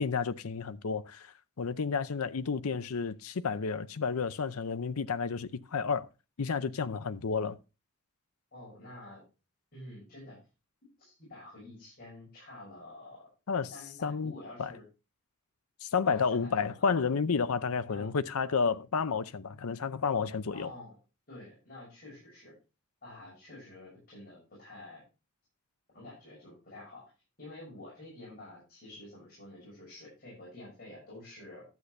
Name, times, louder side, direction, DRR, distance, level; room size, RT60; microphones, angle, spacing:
voice 1, 0.0-1.3 1.6-6.1 6.4-7.6 13.5-13.7 14.0-14.3 14.6-14.7 15.8-20.7, left 5 dB, 85° left, 0.6 m, -31 dB
voice 2, 8.5-9.2 9.7-10.4 11.0-13.3 13.7-14.8 16.0-16.9 17.9-18.2 20.5-21.0 21.3-22.5 23.0-25.0 25.9-27.0 27.4-31.6, left 2 dB, 45° left, 6.9 m, -49 dB
12.0 x 8.1 x 3.2 m
head